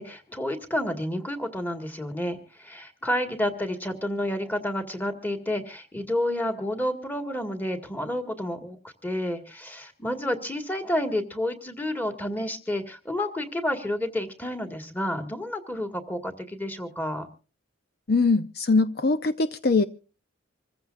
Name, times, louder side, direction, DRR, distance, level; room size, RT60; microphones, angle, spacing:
voice 1, 0.0-17.3, left 1 dB, 10° left, 7 dB, 1.9 m, -30 dB
voice 2, 18.1-19.8, left 3 dB, 50° left, 11 dB, 0.6 m, -22 dB
26.5 x 15.0 x 2.6 m, 0.37 s
head